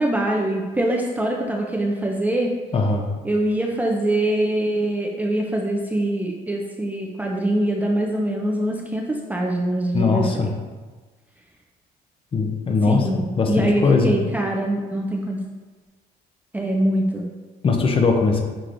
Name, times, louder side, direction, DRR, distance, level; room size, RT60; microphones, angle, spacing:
voice 1, 0.0-2.5 3.2-10.5 12.9-15.4 16.5-17.2, right 1 dB, 10° right, -1 dB, 0.4 m, -23 dB
voice 2, 2.7-3.1 9.9-10.5 12.3-14.2 17.6-18.4, left 4 dB, 30° left, 3 dB, 0.6 m, -20 dB
5.7 x 3.2 x 2.5 m, 1.3 s
cardioid pair, 110°, 17 cm